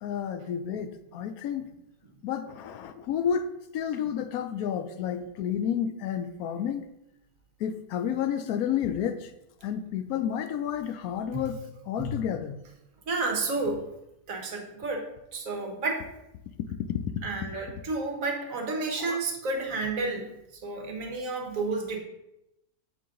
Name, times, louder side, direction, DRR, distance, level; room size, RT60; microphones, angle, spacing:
voice 1, 0.0-1.6 2.2-3.5 3.7-6.9 7.6-9.2 9.6-11.6 11.9-12.6 16.9-17.0 17.6-17.7 19.0-19.2, left 8 dB, 75° left, 1.0 m, -30 dB
voice 2, 13.1-13.8 14.3-16.0 17.2-20.3 20.5-22.0, right 3 dB, 65° right, 1.4 m, -31 dB
7.5 x 4.0 x 3.8 m
omnidirectional pair, 1.6 m